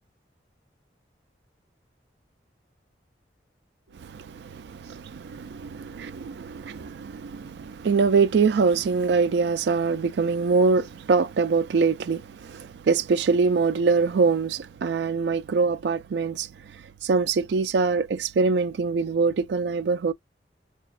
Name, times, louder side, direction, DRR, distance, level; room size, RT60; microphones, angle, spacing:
voice 1, 4.0-16.5 17.0-20.1, right 4 dB, 70° right, 0.3 m, -24 dB
4.9 x 2.2 x 2.4 m
head